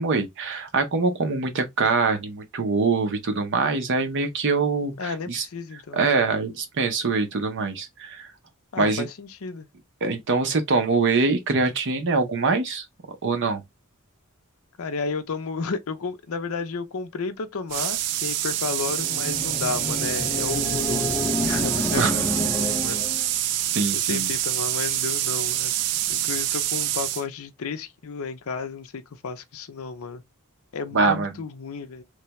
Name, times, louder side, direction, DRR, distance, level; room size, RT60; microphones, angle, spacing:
voice 1, 0.0-5.5 5.9-8.3 8.8-9.1 10.0-12.9 13.2-13.6 21.9-22.1 23.7-24.3 30.9-31.3, right 4 dB, 55° right, 0.7 m, -24 dB
voice 2, 5.0-6.1 8.7-9.7 14.8-23.1 24.1-25.7 26.1-30.2 30.7-32.0, left 4 dB, 65° left, 0.5 m, -32 dB
sound 1, 17.7-27.2, right 13 dB, 90° right, 0.3 m, -26 dB
sound 2, 18.7-23.3, left 1 dB, 10° left, 0.3 m, -29 dB
3.2 x 2.2 x 2.9 m
head